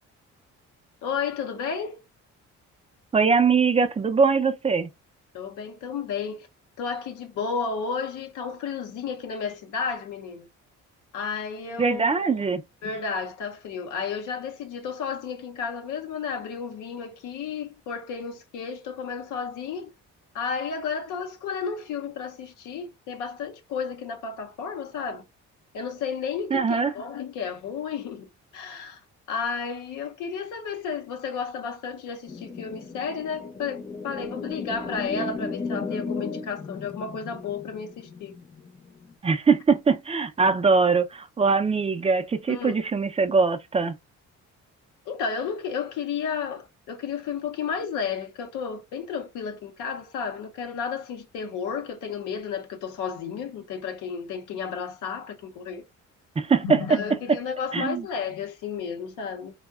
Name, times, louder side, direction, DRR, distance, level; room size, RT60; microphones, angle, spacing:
voice 1, 1.0-2.0 5.3-6.5 6.8-10.5 11.1-12.5 12.8-19.9 20.3-25.2 25.7-29.0 29.3-38.3 42.5-42.7 45.1-55.8 56.6-59.5, left 6 dB, 85° left, 0.6 m, -32 dB
voice 2, 3.1-4.9 11.8-12.6 26.5-26.9 39.2-43.9 56.4-57.0 57.7-58.1, right 5 dB, 20° right, 0.4 m, -22 dB
sound 1, 32.3-39.1, left 4 dB, 25° left, 0.6 m, -35 dB
3.4 x 2.1 x 2.3 m
cardioid pair, 90°, 30 cm